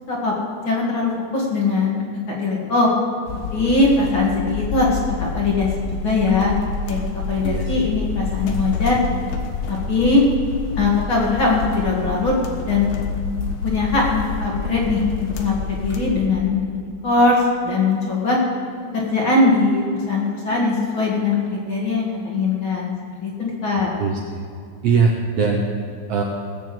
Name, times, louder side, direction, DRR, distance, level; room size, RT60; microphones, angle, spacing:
voice 1, 0.6-2.9 3.5-5.7 6.0-6.5 6.9-7.0 7.3-9.0 9.7-10.2 10.8-12.3 12.7-12.9 13.6-15.0 15.3-16.6 17.0-17.4 17.6-18.4 18.9-22.9 23.2-23.9, left 3 dB, 40° left, -3 dB, 2.5 m, -20 dB
sound 1, 3.3-16.3, left 5 dB, 90° left, 2.9 m, -28 dB
voice 2, 7.4-8.0 24.0-24.5 24.8-25.6 26.1-26.2, right 5 dB, 65° right, 1 dB, 1.7 m, -21 dB
18.5 x 7.1 x 7.7 m, 2.4 s
omnidirectional pair, 3.8 m